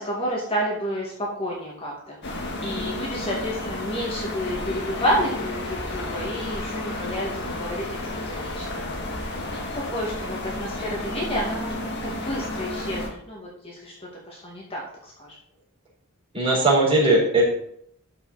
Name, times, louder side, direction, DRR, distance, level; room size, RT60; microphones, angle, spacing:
voice 1, 0.0-2.2 2.6-8.8 9.5-11.7 12.0-15.4, equal, 25° left, -4 dB, 2.1 m, -30 dB
sound 1, 2.2-13.1, left 1 dB, 50° left, 1.6 m, -32 dB
voice 2, 16.3-17.4, right 2 dB, 25° right, -6 dB, 4.3 m, -19 dB
12.5 x 5.5 x 4.2 m, 0.70 s
head